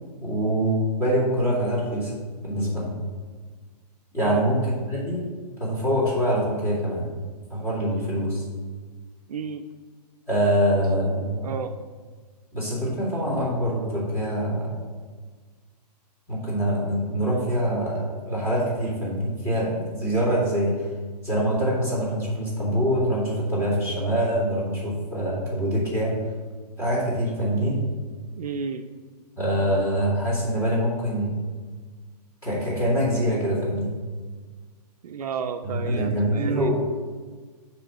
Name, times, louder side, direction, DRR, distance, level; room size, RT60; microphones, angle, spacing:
voice 1, 0.2-2.1 2.4-2.9 4.1-5.2 5.6-7.0 7.5-8.4 10.3-11.5 12.5-14.7 16.3-20.9 21.2-26.2 26.8-27.8 29.4-31.3 32.4-33.9 35.7-36.7, equal, 10° left, -8 dB, 2.2 m, -24 dB
voice 2, 9.3-9.6 11.4-11.7 28.4-28.9 35.0-36.7, right 6 dB, 60° right, 7 dB, 0.5 m, -31 dB
8.9 x 3.1 x 6.2 m, 1.5 s
hypercardioid pair, 170°, 21 cm